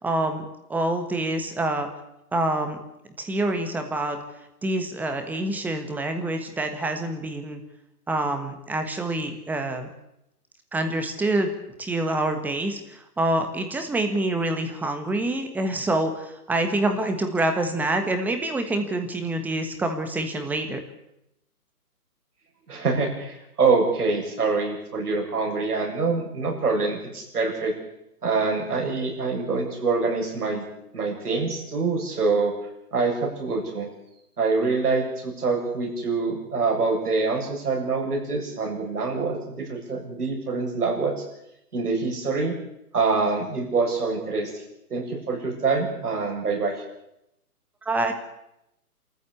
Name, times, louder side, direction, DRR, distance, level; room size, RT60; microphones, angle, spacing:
voice 1, 0.0-1.9 2.3-2.8 3.2-4.2 4.6-7.6 8.1-9.9 10.7-11.5 11.8-20.8 47.8-48.1, right 2 dB, 5° right, 6 dB, 1.4 m, -26 dB
voice 2, 22.7-27.7 28.2-30.6 30.9-32.5 32.9-33.9 34.4-41.2 41.7-42.5 42.9-44.5 44.9-46.8, right 4 dB, 75° right, 0 dB, 7.5 m, -25 dB
27.5 x 14.5 x 8.4 m, 0.84 s
hypercardioid pair, 150°, 46 cm